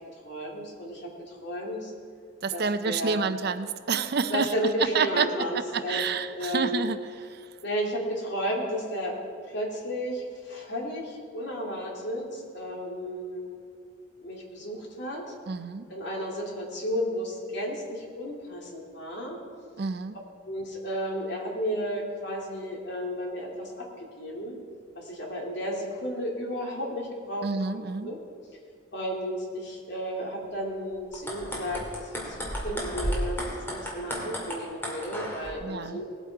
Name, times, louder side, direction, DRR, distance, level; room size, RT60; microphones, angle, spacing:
voice 1, 0.2-1.9 2.5-3.2 4.3-6.0 6.3-6.8 7.6-9.2 9.5-13.6 14.2-15.3 15.9-19.4 20.4-24.6 24.9-28.2 28.9-36.0, equal, 60° left, -2 dB, 2.7 m, -33 dB
voice 2, 2.4-7.0 7.3-7.5 15.5-15.9 19.8-20.2 27.4-28.1 35.6-36.0, right 5 dB, 55° right, 11 dB, 0.5 m, -29 dB
sound 1, 31.0-35.5, equal, 10° left, 2.2 m, -33 dB
19.0 x 8.2 x 4.7 m, 2.3 s
head